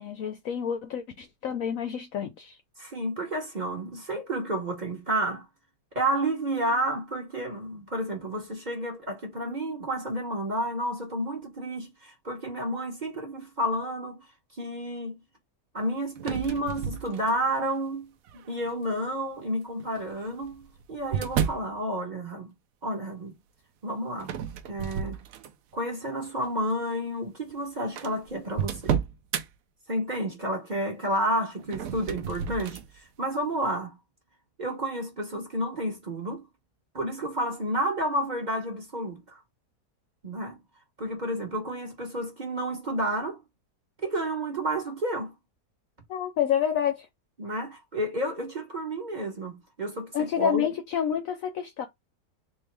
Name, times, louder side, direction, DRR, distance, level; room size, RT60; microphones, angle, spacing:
voice 1, 0.0-2.6 46.1-47.1 50.1-51.9, left 8 dB, 70° left, 0.8 m, -28 dB
voice 2, 2.8-5.5 5.9-14.2 14.6-15.2 15.7-22.5 22.8-23.3 23.8-24.4 24.7-25.2 25.7-29.0 29.9-34.0 34.6-36.5 36.9-39.4 40.2-40.6 41.0-43.4 44.0-45.3 47.4-50.7, right 1 dB, 30° right, 1.0 m, -31 dB
sound 1, 16.2-17.6 18.3-18.7 19.8-21.7 24.2-25.8 26.2-26.5 27.2-27.3 27.5-27.6 28.0-29.5 31.6-32.9, right 8 dB, 65° right, 0.9 m, -32 dB
3.7 x 2.7 x 3.2 m
omnidirectional pair, 1.8 m